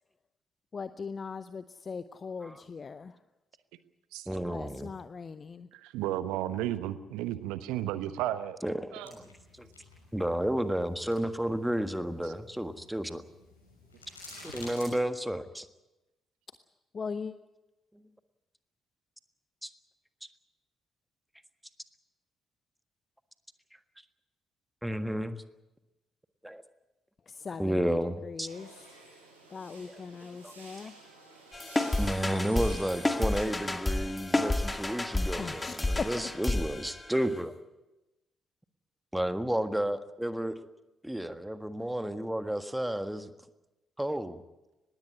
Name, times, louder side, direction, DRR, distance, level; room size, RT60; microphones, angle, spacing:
voice 1, 0.7-3.2 4.5-5.7 16.9-17.4 27.3-29.0 29.5-30.9 35.4-36.6, left 5 dB, 40° left, 14 dB, 0.7 m, -40 dB
voice 2, 4.3-4.9 8.6-9.3 9.6-9.7 10.1-13.2 14.4-15.7 19.6-19.7 24.8-25.4 26.4-26.6 27.6-28.5 30.4-30.5 32.0-37.5 39.1-40.6 41.0-43.3 44.0-44.4, right 1 dB, 5° right, 10 dB, 1.6 m, -32 dB
voice 3, 5.8-8.6 8.9-9.1, right 13 dB, 65° right, 13 dB, 1.1 m, -33 dB
sound 1, 9.0-14.9, left 2 dB, 80° left, 6.2 m, -51 dB
sound 2, 28.4-33.5, right 3 dB, 85° right, 4.8 m, -51 dB
sound 3, 31.5-37.4, left 2 dB, 20° left, 2.0 m, -31 dB
20.5 x 16.0 x 9.9 m, 1.0 s
figure-of-eight pair, 40°, 0 cm